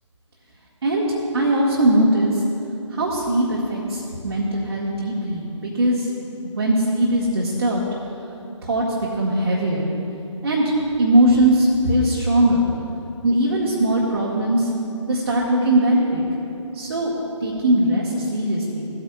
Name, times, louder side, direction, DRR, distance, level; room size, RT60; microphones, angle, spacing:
voice 1, 1.3-2.4 2.9-6.1 6.4-7.8 8.6-8.8 9.1-9.9 10.4-12.7 13.2-14.7 15.1-16.2 16.7-17.1 17.4-18.9, right 1 dB, 50° right, -5 dB, 1.8 m, -20 dB
16.5 x 8.9 x 2.5 m, 2.8 s
figure-of-eight pair, 150°, 16 cm